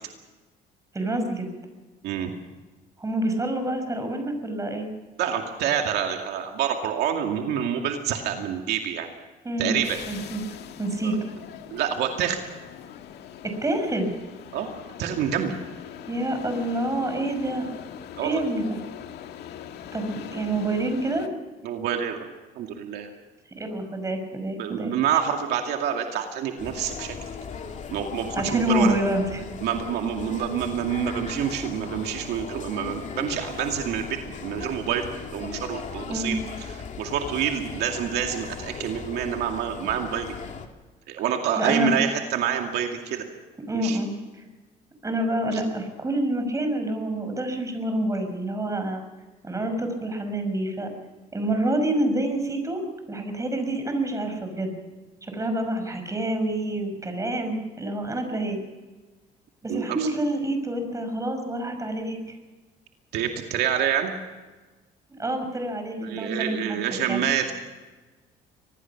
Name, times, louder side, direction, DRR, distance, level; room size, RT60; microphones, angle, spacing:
voice 1, 0.9-1.5 3.0-4.9 9.4-9.8 10.1-10.4 10.8-11.1 13.6-14.1 16.1-17.7 18.2-18.8 19.9-21.3 23.6-24.9 28.4-29.4 36.1-36.4 41.6-41.9 43.7-44.1 45.0-49.0 49.4-50.9 51.3-52.8 53.1-54.7 55.2-58.6 59.6-62.2 65.1-66.8 67.1-67.2, right 1 dB, 20° right, 6 dB, 5.9 m, -27 dB
voice 2, 5.2-9.1 9.6-10.0 11.0-11.2 11.7-12.4 14.5-14.7 15.0-15.6 18.2-18.4 21.6-22.3 22.6-23.1 24.6-27.2 27.9-29.0 29.6-35.1 35.3-36.3 37.0-40.4 41.1-43.3 43.7-44.0 45.5-45.6 59.7-60.1 63.1-64.1 66.0-67.5, right 9 dB, 80° right, 3 dB, 2.3 m, -27 dB
sound 1, 9.8-21.3, left 10 dB, 75° left, 2.0 m, -42 dB
sound 2, 26.6-40.7, left 6 dB, 45° left, 2.5 m, -38 dB
25.0 x 20.0 x 6.0 m, 1.2 s
cardioid pair, 110°, 17 cm